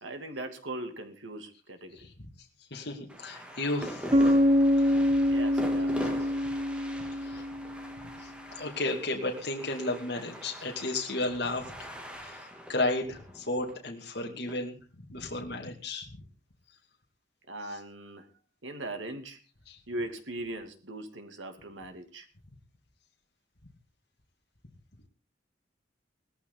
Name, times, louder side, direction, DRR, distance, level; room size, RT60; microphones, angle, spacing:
voice 1, 0.0-2.1 4.9-5.9 17.5-18.3 18.6-19.4 19.9-22.3, right 1 dB, 90° right, 6 dB, 2.8 m, -40 dB
voice 2, 2.7-4.3 4.8-4.9 7.2-7.4 8.2-8.3 8.6-11.7 12.1-14.8 15.1-16.1 19.7-19.8, left 2 dB, 60° left, 0 dB, 2.6 m, -33 dB
sound 1, 3.1-14.6, equal, 5° right, 2.6 m, -43 dB
Bass guitar, 4.1-7.9, equal, 25° right, 0.7 m, -25 dB
18.5 x 14.0 x 4.0 m, 0.36 s
head